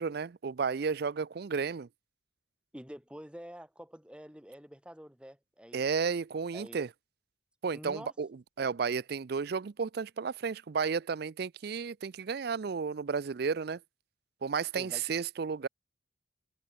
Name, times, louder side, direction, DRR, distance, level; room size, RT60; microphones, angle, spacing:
voice 1, 0.0-1.9 5.7-6.9 7.6-8.3 8.6-13.8 14.4-15.7, right 5 dB, 55° right, 0.4 m, -32 dB
voice 2, 2.7-5.8 6.5-6.8 7.7-8.1 14.7-15.0, equal, 5° right, 2.0 m, -47 dB
head